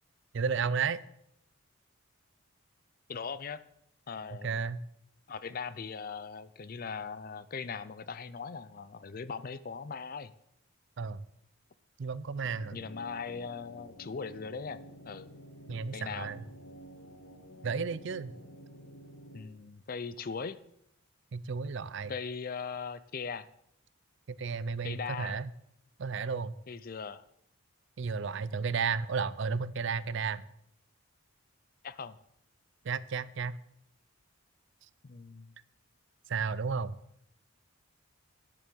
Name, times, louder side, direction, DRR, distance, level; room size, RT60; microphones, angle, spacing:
voice 1, 0.3-1.0 4.3-4.8 11.0-11.2 12.0-12.8 15.7-16.4 17.6-18.4 21.3-22.1 24.3-25.5 26.0-26.5 28.0-30.4 32.8-33.6 36.3-37.0, right 5 dB, 55° right, 18 dB, 0.4 m, -33 dB
voice 2, 3.1-3.6 4.1-4.6 5.3-10.3 12.7-15.3 15.9-16.3 19.3-20.6 22.1-23.5 24.8-25.4 26.7-27.2 31.8-32.2 35.0-35.5, left 5 dB, 40° left, 15 dB, 0.4 m, -39 dB
sound 1, 12.4-19.4, equal, 60° left, 1.2 m, -51 dB
9.9 x 7.1 x 6.8 m, 0.75 s
head